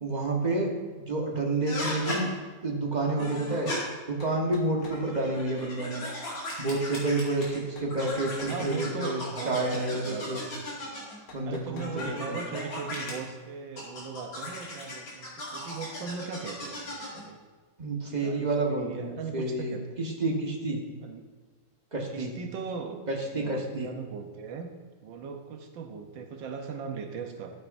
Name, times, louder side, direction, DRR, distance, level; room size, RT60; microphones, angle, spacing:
voice 1, 0.0-2.3 2.6-3.7 4.1-6.0 6.6-10.4 11.3-12.4 17.8-20.8 21.9-22.4 23.1-23.9, right 2 dB, 25° right, -1 dB, 1.3 m, -29 dB
sound 1, 1.7-2.2 3.2-3.8 4.8-7.6 7.9-11.2 11.8-13.1 13.8-17.2, left 1 dB, 85° left, 3.1 m, -37 dB
sound 2, 4.2-5.1 7.4-8.6 11.3-12.2, left 3 dB, 70° left, 1.7 m, -49 dB
voice 2, 8.5-10.4 11.4-17.4 18.2-20.0 21.0-21.3 22.1-23.0 23.3-24.7 25.0-27.5, right 5 dB, 80° right, 5 dB, 1.6 m, -39 dB
13.0 x 8.2 x 2.6 m, 1.4 s
omnidirectional pair, 2.1 m